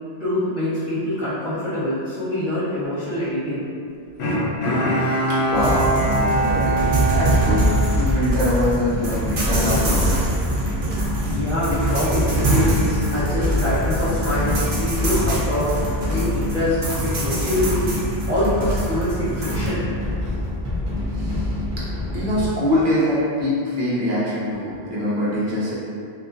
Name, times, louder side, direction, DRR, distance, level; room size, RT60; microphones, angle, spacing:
voice 1, 0.2-3.7 11.3-15.7 16.1-17.9 18.3-19.8 20.2-20.3, left 1 dB, 10° right, -18 dB, 1.4 m, -24 dB
Bowed string instrument, 4.2-8.7 9.1-9.2, right 1 dB, 80° left, 0.9 m, -23 dB
voice 2, 5.0-7.7 7.9-10.3 21.1-21.6 22.1-25.7, left 1 dB, 55° right, -9 dB, 0.9 m, -24 dB
sound 1, 5.5-19.7, right 1 dB, 70° right, 0.9 m, -24 dB
sound 2, 7.2-22.5, left 1 dB, 40° right, 0.5 m, -28 dB
2.8 x 2.5 x 2.4 m, 2.4 s
omnidirectional pair, 1.1 m